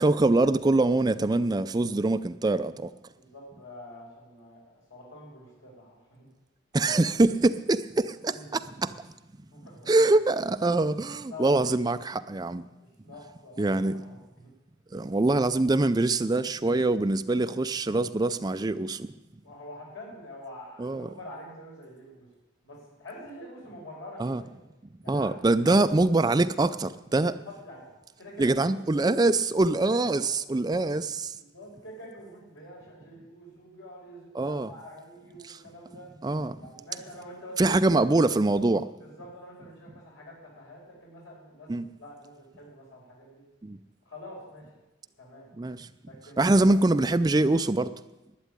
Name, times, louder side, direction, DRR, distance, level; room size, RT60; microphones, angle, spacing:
voice 1, 0.0-2.9 6.7-9.1 9.9-12.6 13.6-13.9 14.9-19.1 20.8-21.1 24.2-24.4 25.1-27.3 28.4-31.4 34.3-34.7 35.4-35.6 36.2-36.6 37.6-38.9 41.7-41.8 43.6-43.8 45.6-45.9 46.4-47.9, right 2 dB, 20° right, 0.4 m, -24 dB
voice 2, 3.1-6.3 8.3-8.5 9.5-9.9 11.3-12.7 13.0-14.5 19.4-22.3 22.6-24.6 25.0-26.1 27.2-27.9 28.2-28.9 30.0-30.9 31.3-36.1 36.6-37.8 39.0-41.7 42.0-43.4 44.1-44.6 45.2-45.5 46.0-46.9, left 1 dB, 85° left, 5.5 m, -46 dB
11.5 x 8.5 x 9.9 m
head